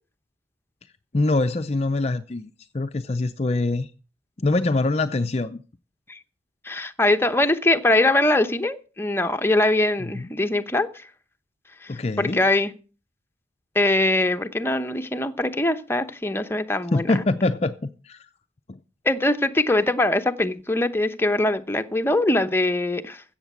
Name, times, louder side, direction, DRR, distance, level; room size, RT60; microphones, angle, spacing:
voice 1, 1.1-3.9 4.4-5.6 10.0-10.3 11.9-12.4 16.9-18.3 18.7-18.8, left 2 dB, 35° left, 0.5 m, -24 dB
voice 2, 6.6-11.1 11.8-12.7 13.7-17.1 19.0-23.2, left 2 dB, 15° left, 0.8 m, -22 dB
15.0 x 7.3 x 6.1 m
head